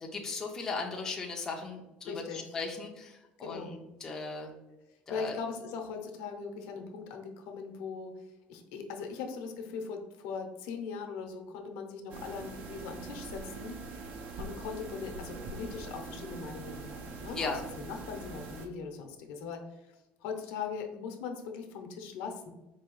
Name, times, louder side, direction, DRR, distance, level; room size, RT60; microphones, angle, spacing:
voice 1, 0.0-4.5 5.1-5.3 17.4-17.6, left 4 dB, 15° left, 0 dB, 0.4 m, -37 dB
voice 2, 2.1-2.5 3.4-3.8 5.1-13.8 14.4-19.9 20.2-22.5, left 5 dB, 75° left, 4 dB, 0.7 m, -40 dB
sound 1, 12.1-18.7, right 3 dB, 45° right, 0.5 m, -43 dB
4.6 x 2.8 x 3.0 m, 0.99 s
cardioid pair, 180°, 4 cm